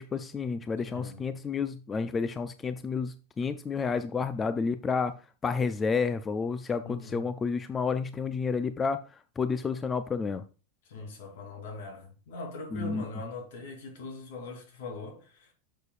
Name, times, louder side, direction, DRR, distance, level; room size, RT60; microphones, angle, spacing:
voice 1, 0.0-5.1 5.4-9.0 9.4-10.4 12.7-13.0, left 5 dB, 15° left, 0.3 m, -30 dB
voice 2, 0.9-1.3 6.8-7.3 10.8-15.5, left 3 dB, 70° left, 3.0 m, -41 dB
11.0 x 6.7 x 2.4 m
supercardioid pair, 165°, 0 cm